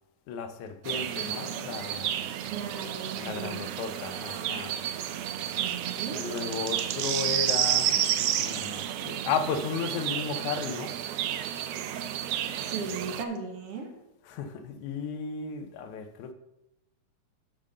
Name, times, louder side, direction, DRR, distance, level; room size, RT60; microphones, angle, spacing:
voice 1, 0.3-2.2 3.2-4.8 6.1-11.0 12.5-12.6 14.2-16.3, left 5 dB, 85° left, 2.2 m, -34 dB
sound 1, 0.9-13.2, right 10 dB, 85° right, 1.3 m, -31 dB
voice 2, 2.5-3.7 5.4-6.2 12.6-13.9, right 5 dB, 60° right, 2.0 m, -37 dB
10.0 x 3.8 x 6.6 m
omnidirectional pair, 3.3 m